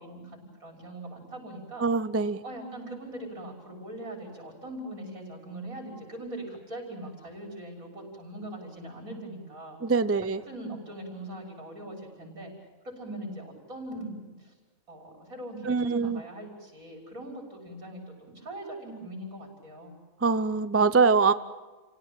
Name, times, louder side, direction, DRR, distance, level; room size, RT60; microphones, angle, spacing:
voice 1, 0.0-1.9 2.4-9.8 10.5-12.5 12.8-14.5 14.9-19.9, right 1 dB, 80° right, 2 dB, 6.7 m, -41 dB
voice 2, 1.8-2.4 9.8-10.4 15.6-16.2 20.2-21.3, right 4 dB, 15° right, 13 dB, 0.5 m, -23 dB
29.0 x 17.0 x 8.9 m, 1.3 s
omnidirectional pair, 1.5 m